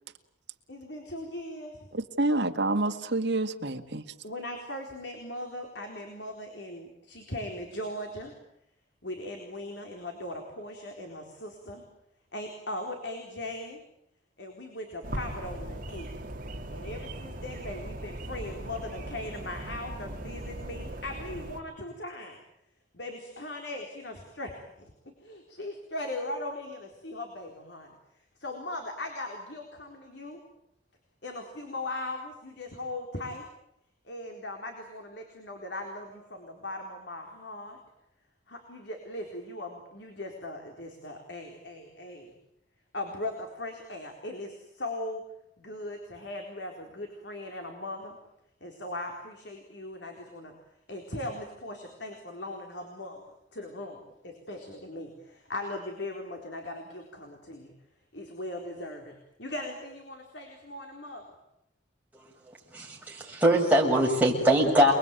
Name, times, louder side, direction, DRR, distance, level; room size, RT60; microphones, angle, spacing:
voice 1, 0.7-1.9 4.2-8.4 9.0-11.8 12.3-13.8 14.4-16.1 16.7-22.4 22.9-24.9 25.2-28.0 28.4-30.4 31.2-33.5 34.0-37.8 38.5-42.3 42.9-45.3 45.6-48.2 48.6-50.6 50.9-57.7 58.1-61.4, left 1 dB, 65° left, 4.1 m, -39 dB
voice 2, 1.9-4.0, right 2 dB, 65° right, 2.1 m, -28 dB
sound 1, 15.0-21.6, right 1 dB, 45° right, 2.7 m, -39 dB
voice 3, 62.7-64.9, equal, 10° right, 6.9 m, -22 dB
29.5 x 22.0 x 9.2 m
head